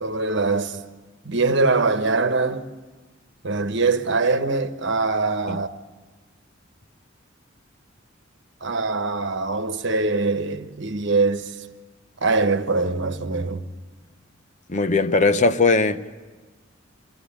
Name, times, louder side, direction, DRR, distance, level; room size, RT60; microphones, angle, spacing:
voice 1, 0.0-0.9 1.2-2.7 3.4-5.7 8.6-11.7 12.2-13.7, right 3 dB, 65° right, 1.2 m, -23 dB
voice 2, 14.7-16.1, left 3 dB, 40° left, 0.8 m, -19 dB
23.5 x 17.0 x 10.0 m
head